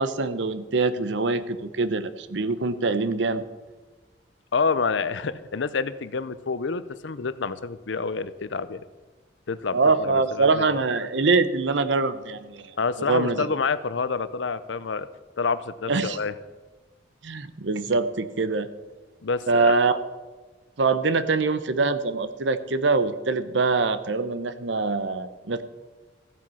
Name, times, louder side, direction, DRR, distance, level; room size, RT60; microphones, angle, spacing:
voice 1, 0.0-3.5 9.7-12.7 13.1-13.5 15.9-16.2 17.2-18.7 19.5-20.0 20.8-25.6, right 4 dB, 80° right, 12 dB, 0.8 m, -24 dB
voice 2, 4.5-8.8 9.5-10.8 12.8-15.1 15.4-16.3 19.2-19.7, left 4 dB, 80° left, 15 dB, 0.6 m, -28 dB
15.0 x 7.6 x 5.6 m, 1.3 s
head